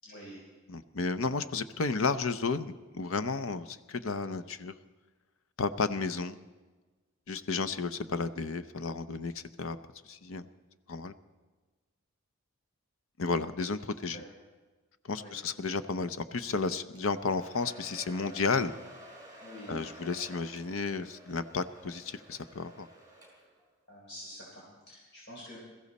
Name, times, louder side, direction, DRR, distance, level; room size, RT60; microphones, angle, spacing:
voice 1, 0.0-0.4 14.1-14.2 15.2-15.3 19.4-19.8 23.9-25.6, equal, 50° left, -5 dB, 4.1 m, -47 dB
voice 2, 0.7-4.7 5.6-6.4 7.3-9.8 10.1-10.5 10.9-11.1 13.2-14.2 15.1-18.7 19.7-22.9, left 4 dB, 65° left, 13 dB, 0.7 m, -32 dB
Domestic sounds home sounds, 17.0-23.7, right 1 dB, 15° right, 4.6 m, -52 dB
22.0 x 14.5 x 4.2 m, 1.3 s
head